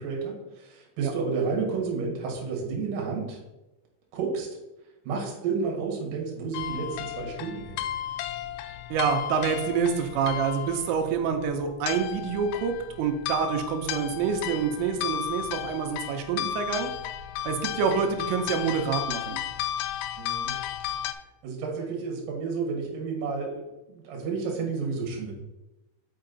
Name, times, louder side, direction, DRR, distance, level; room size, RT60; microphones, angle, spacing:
voice 1, 0.0-3.4 4.1-4.5 5.0-7.8 20.2-20.6 21.4-23.6 23.9-25.3, right 5 dB, 60° right, 0 dB, 2.7 m, -31 dB
sound 1, 6.5-21.1, left 11 dB, 85° left, 3.0 m, -34 dB
voice 2, 8.9-16.9 17.4-19.4, right 6 dB, 90° right, 5 dB, 3.3 m, -27 dB
6.4 x 5.7 x 3.9 m, 1.0 s
omnidirectional pair, 5.6 m